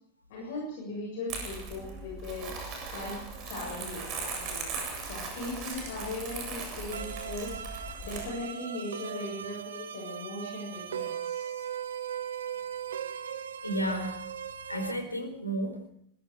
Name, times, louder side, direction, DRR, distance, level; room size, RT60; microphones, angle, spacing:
voice 1, 0.3-2.5 2.9-4.7 5.1-7.6 8.0-11.6, left 2 dB, 55° left, -1 dB, 7.2 m, -38 dB
Crumpling crinkling, 1.3-8.3, right 4 dB, 40° right, 7.8 m, -38 dB
sound 1, 6.9-14.9, right 9 dB, 65° right, 1.3 m, -38 dB
voice 2, 13.6-14.3 14.7-15.9, right 1 dB, 85° left, 7 dB, 4.5 m, -32 dB
25.0 x 22.0 x 5.0 m, 0.70 s
figure-of-eight pair, 90°, 0 cm